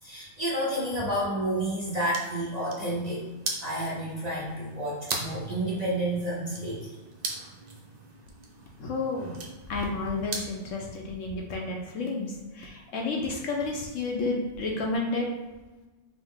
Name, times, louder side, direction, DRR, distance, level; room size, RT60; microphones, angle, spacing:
voice 1, 0.0-3.2 3.6-7.0, right 1 dB, 35° right, -6 dB, 0.7 m, -30 dB
sound 1, 1.8-10.7, right 3 dB, 80° right, 0.3 m, -40 dB
voice 2, 8.8-9.4 9.7-15.3, left 3 dB, 65° left, 0 dB, 0.9 m, -31 dB
5.2 x 2.1 x 3.6 m, 1.2 s
omnidirectional pair, 1.5 m